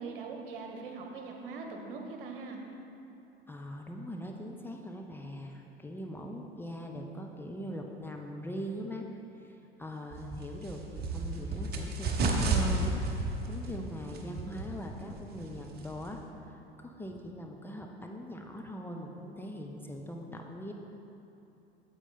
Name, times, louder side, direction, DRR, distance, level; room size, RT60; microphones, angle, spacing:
voice 1, 0.0-2.6, right 4 dB, 60° right, 2 dB, 1.2 m, -41 dB
voice 2, 3.5-9.1 9.3-20.7, equal, 5° left, 1 dB, 0.5 m, -41 dB
sound 1, 10.1-16.3, right 3 dB, 30° right, 1.1 m, -33 dB
9.0 x 7.6 x 4.2 m, 3.0 s
figure-of-eight pair, 75°, 30 cm